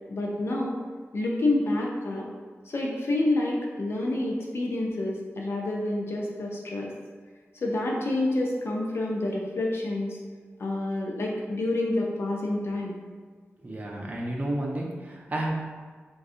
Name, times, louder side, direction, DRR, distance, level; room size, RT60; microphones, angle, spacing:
voice 1, 0.1-0.8 1.1-2.3 2.7-6.9 7.6-10.2 10.6-13.0, left 2 dB, 65° left, -2 dB, 0.5 m, -28 dB
voice 2, 13.6-15.5, right 1 dB, 35° right, -3 dB, 0.5 m, -31 dB
2.6 x 2.3 x 3.7 m, 1.5 s
wide cardioid pair, 100°, 5 cm